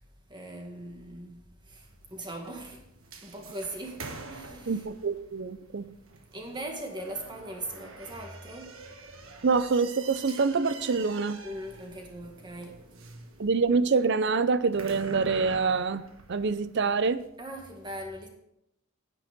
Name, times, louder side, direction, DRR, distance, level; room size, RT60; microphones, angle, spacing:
voice 1, 0.3-2.8 3.2-4.8 6.3-8.8 11.4-13.3 17.4-18.3, right 1 dB, 20° right, 2.0 m, -40 dB
sound 1, 1.8-17.2, right 3 dB, 75° right, 1.4 m, -46 dB
voice 2, 4.7-5.9 9.4-11.4 13.4-16.0 16.3-17.2, right 4 dB, 55° right, 0.6 m, -26 dB
9.7 x 9.4 x 5.2 m
head